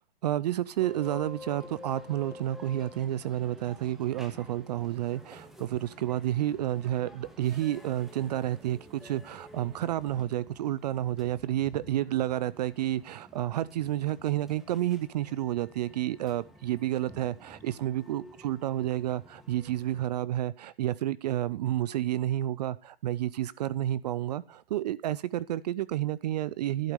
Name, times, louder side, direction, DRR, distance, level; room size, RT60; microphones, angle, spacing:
voice 1, 0.2-26.9, right 13 dB, 45° right, 19 dB, 0.4 m, -30 dB
sound 1, 0.8-20.1, left 1 dB, ahead, 1.3 m, -50 dB
12.0 x 8.1 x 5.2 m, 0.38 s
hypercardioid pair, 150°, 31 cm